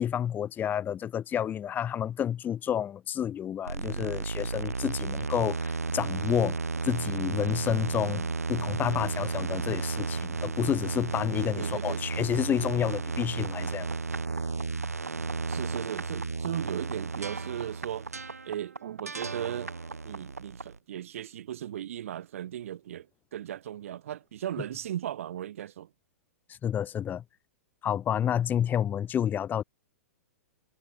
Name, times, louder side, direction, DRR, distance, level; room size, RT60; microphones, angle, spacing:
voice 1, 0.0-6.6 6.9-13.9 26.6-27.2 27.8-29.6, left 9 dB, 25° left, 2.3 m, -29 dB
sound 1, 3.7-20.8, right 4 dB, 90° right, 2.3 m, -33 dB
voice 2, 11.6-12.1 15.5-19.7 20.0-23.1 23.3-25.9, right 11 dB, 60° right, 5.2 m, -37 dB
hypercardioid pair, 110°, 8 cm